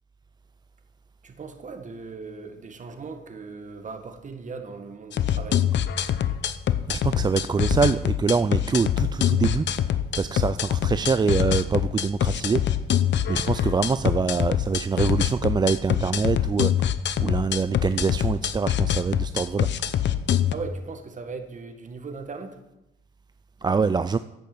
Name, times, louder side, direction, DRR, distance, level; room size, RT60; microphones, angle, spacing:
voice 1, 1.2-5.6 20.5-22.6, right 4 dB, 40° right, 6 dB, 1.8 m, -38 dB
sound 1, 5.1-20.5, left 10 dB, 65° left, 0.8 m, -24 dB
voice 2, 6.9-9.7 10.2-12.6 13.3-16.9 17.2-19.7 23.6-24.2, right 5 dB, 20° right, 12 dB, 0.4 m, -24 dB
10.5 x 8.4 x 7.9 m, 0.93 s
cardioid pair, 90°, 20 cm